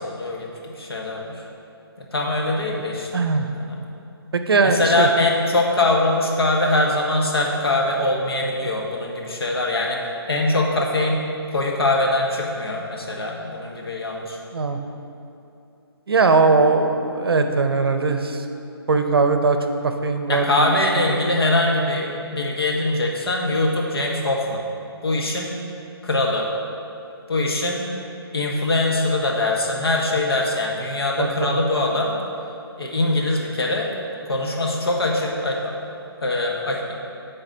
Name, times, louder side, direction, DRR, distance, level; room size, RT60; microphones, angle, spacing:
voice 1, 0.0-1.4 2.1-3.3 3.5-3.8 4.6-10.0 10.3-11.2 11.5-14.4 20.3-24.6 25.0-25.6 26.0-26.5 27.3-27.9 28.3-32.2 32.8-33.9 34.3-35.8 36.2-36.9, left 2 dB, 70° left, -1 dB, 1.3 m, -22 dB
voice 2, 3.1-3.5 4.3-5.1 14.5-14.8 16.1-18.4 18.9-19.6 19.8-20.7 31.2-31.6, right 4 dB, 65° right, 6 dB, 0.6 m, -19 dB
10.5 x 4.0 x 3.9 m, 2.7 s
hypercardioid pair, 175°, 14 cm